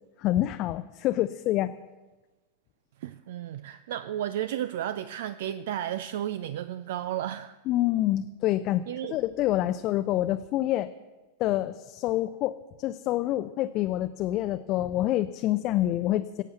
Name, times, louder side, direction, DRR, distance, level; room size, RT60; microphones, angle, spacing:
voice 1, 0.2-1.7 7.7-8.8 9.1-10.9 11.4-16.4, left 14 dB, 40° left, 9 dB, 0.5 m, -27 dB
voice 2, 3.0-7.5 8.9-9.2, right 11 dB, 55° right, 14 dB, 0.4 m, -33 dB
16.5 x 8.5 x 6.8 m, 1.2 s
figure-of-eight pair, 90°, 0 cm